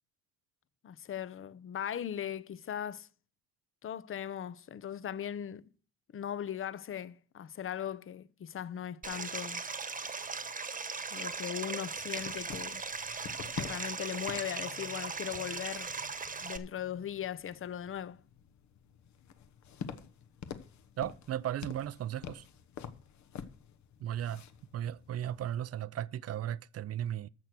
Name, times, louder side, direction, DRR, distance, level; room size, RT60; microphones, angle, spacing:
voice 1, 0.8-3.1 3.8-5.7 6.1-9.6 11.1-12.8 13.6-15.9 16.4-18.2, left 9 dB, 45° left, 0.7 m, -39 dB
Stream, 9.0-16.6, right 4 dB, 25° right, 1.3 m, -38 dB
sound 1, 11.9-25.6, left 7 dB, 70° left, 1.2 m, -48 dB
voice 2, 21.0-22.4 24.0-24.4 24.7-27.3, right 11 dB, 55° right, 0.6 m, -36 dB
13.5 x 6.6 x 6.1 m
cardioid pair, 90°, 30 cm